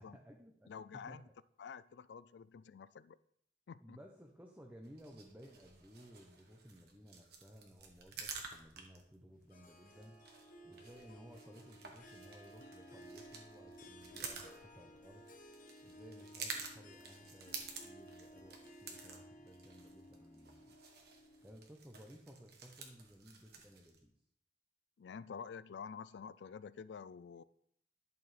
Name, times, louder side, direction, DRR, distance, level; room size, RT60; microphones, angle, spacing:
voice 1, 0.0-0.7 1.1-1.3 3.8-10.2 10.6-15.3 15.8-20.8 21.4-24.1, equal, 10° right, 1 dB, 0.8 m, -57 dB
voice 2, 0.7-1.2 1.6-3.2 3.7-4.0 25.0-27.4, left 6 dB, 70° left, 17 dB, 0.3 m, -49 dB
sound 1, 4.8-24.0, right 5 dB, 65° right, 1.4 m, -51 dB
Harp, 9.5-21.7, equal, 50° left, 1.1 m, -57 dB
11.0 x 6.7 x 3.3 m, 0.68 s
head